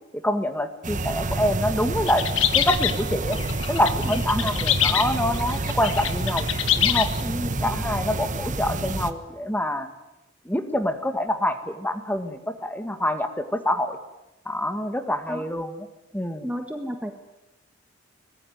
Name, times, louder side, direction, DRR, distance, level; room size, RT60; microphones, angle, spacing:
voice 1, 0.1-3.4 3.7-6.5 6.8-7.1 7.6-9.9 10.5-14.0 14.5-15.9 16.1-16.5, left 1 dB, 10° left, 8 dB, 1.9 m, -26 dB
sound 1, 0.8-9.1, right 2 dB, 40° right, 1.4 m, -28 dB
sound 2, 2.1-7.2, left 10 dB, 85° left, 1.5 m, -25 dB
voice 2, 7.2-7.6 15.3-15.4 16.4-17.1, equal, 5° right, 5 dB, 1.6 m, -31 dB
23.5 x 20.5 x 9.4 m, 0.94 s
head